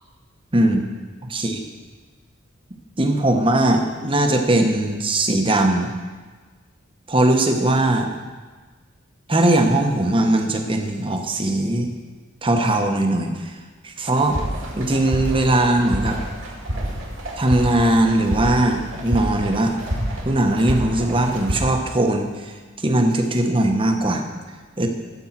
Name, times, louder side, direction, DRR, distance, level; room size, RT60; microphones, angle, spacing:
voice 1, 0.5-0.9 1.3-1.6 3.0-5.9 7.1-8.1 9.3-11.9 12.4-13.5 13.8-14.4 14.8-16.2 17.4-19.7 20.2-22.3 22.8-24.2 24.8-24.9, right 1 dB, 25° right, 4 dB, 1.0 m, -19 dB
sound 1, 14.2-21.6, equal, 80° right, 2.4 m, -28 dB
12.0 x 5.4 x 7.4 m, 1.4 s
head